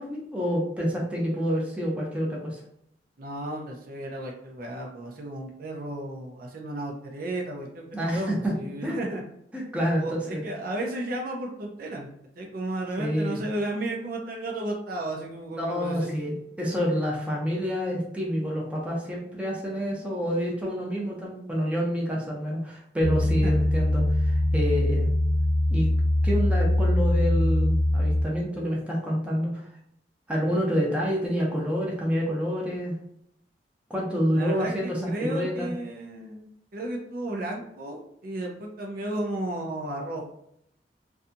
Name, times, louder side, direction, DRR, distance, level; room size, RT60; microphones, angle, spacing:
voice 1, 0.0-2.6 7.9-8.5 8.8-9.0 9.5-10.4 13.0-13.4 15.6-25.1 25.7-25.9 26.2-29.7 30.3-33.0 33.9-35.7, equal, 5° right, -3 dB, 0.6 m, -28 dB
voice 2, 3.2-7.8 8.1-9.2 10.0-16.1 23.4-23.6 34.4-40.3, right 1 dB, 55° right, 1 dB, 0.5 m, -33 dB
sound 1, 23.0-28.2, left 1 dB, 45° left, 0.5 m, -23 dB
2.6 x 2.3 x 2.6 m, 0.73 s
head